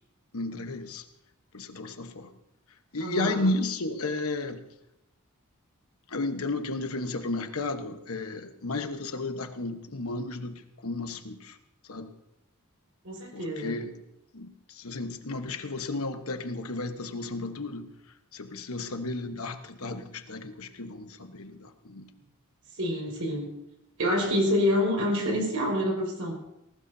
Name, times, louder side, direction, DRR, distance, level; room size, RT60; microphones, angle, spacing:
voice 1, 0.3-1.0 1.5-2.3 2.9-4.6 6.1-11.6 11.9-12.1 13.3-13.9 14.3-17.9 18.3-22.1, left 2 dB, 70° left, 8 dB, 1.1 m, -33 dB
voice 2, 3.0-3.5 13.0-13.8 22.8-23.5 24.0-26.3, left 1 dB, 70° right, -1 dB, 5.2 m, -27 dB
19.5 x 18.0 x 2.7 m, 0.87 s
head